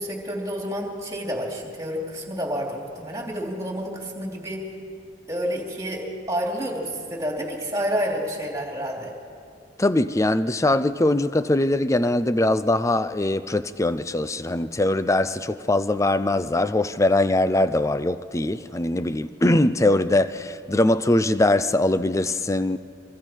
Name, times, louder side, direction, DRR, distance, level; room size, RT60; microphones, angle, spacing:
voice 1, 0.0-4.7 5.3-9.1, equal, 15° right, 3.1 m, -29 dB
voice 2, 9.8-22.8, left 1 dB, 15° left, 0.5 m, -22 dB
25.5 x 24.5 x 4.6 m
head